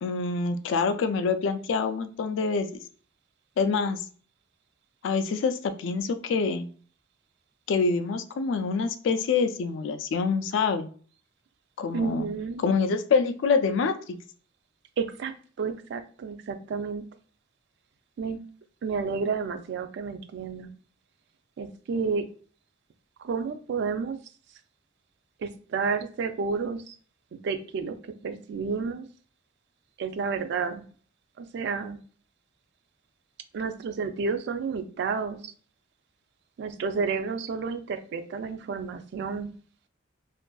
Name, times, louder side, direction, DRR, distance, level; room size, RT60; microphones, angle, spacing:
voice 1, 0.0-2.7 3.6-4.0 5.0-6.7 7.7-10.9 11.8-12.3 12.6-14.2, left 5 dB, 65° left, 9 dB, 0.3 m, -26 dB
voice 2, 11.9-12.6 15.0-15.3 15.6-17.0 18.2-18.4 18.8-20.7 21.6-22.3 23.2-24.2 25.4-26.9 27.3-28.0 28.2-29.1 30.0-30.9 31.4-32.0 33.5-35.5 36.6-39.5, right 5 dB, 60° right, 8 dB, 0.3 m, -31 dB
2.7 x 2.5 x 2.2 m, 0.43 s
head